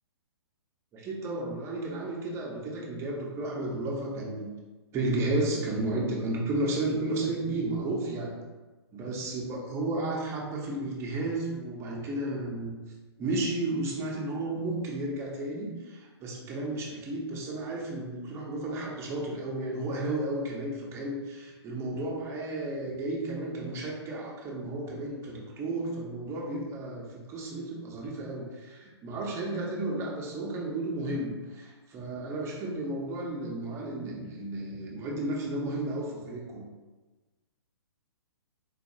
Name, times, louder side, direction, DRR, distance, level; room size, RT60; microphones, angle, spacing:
voice 1, 0.9-4.5 4.9-8.3 8.9-12.8 13.2-36.6, right 2 dB, 20° right, -2 dB, 0.7 m, -33 dB
4.0 x 2.7 x 2.7 m, 1.2 s
hypercardioid pair, 130°, 14 cm